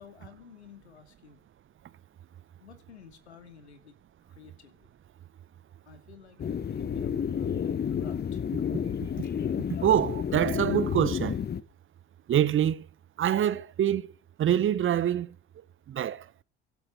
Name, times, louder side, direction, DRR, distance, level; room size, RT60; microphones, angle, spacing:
voice 1, 0.0-1.4 2.6-4.0 4.3-4.9 5.9-7.5 7.9-8.4, left 6 dB, 85° left, 2.5 m, -52 dB
sound 1, 6.4-11.6, left 8 dB, 30° left, 1.1 m, -30 dB
voice 2, 9.8-11.4 12.3-12.8 13.2-14.1 14.4-15.3 15.9-16.2, right 10 dB, 40° right, 1.1 m, -25 dB
24.5 x 8.2 x 6.6 m
figure-of-eight pair, 60°, 32 cm